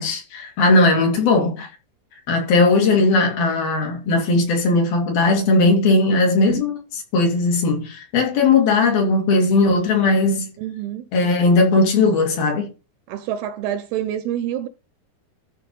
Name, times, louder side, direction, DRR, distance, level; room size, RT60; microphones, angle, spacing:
voice 1, 0.0-1.7 2.3-10.5 11.1-12.7, left 3 dB, 60° left, 4.1 m, -18 dB
voice 2, 10.6-11.1 13.1-14.7, right 11 dB, 80° right, 2.4 m, -27 dB
13.0 x 5.1 x 5.3 m
omnidirectional pair, 5.0 m